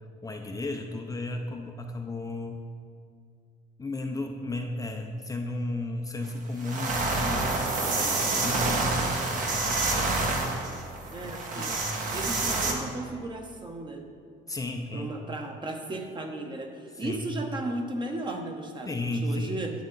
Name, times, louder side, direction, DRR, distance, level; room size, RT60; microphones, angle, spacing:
voice 1, 0.2-2.6 3.8-7.5 7.9-9.0 9.3-10.4 11.2-12.2 14.5-15.1 17.0-17.3 18.9-19.6, left 2 dB, 20° left, 3 dB, 0.6 m, -34 dB
sound 1, 6.2-6.3 6.6-12.7, right 3 dB, 50° right, 1.5 m, -28 dB
voice 2, 11.1-11.7 12.1-14.0 14.9-19.7, right 2 dB, 25° right, 3 dB, 1.1 m, -35 dB
10.5 x 7.4 x 3.9 m, 2.2 s
cardioid pair, 110°, 17 cm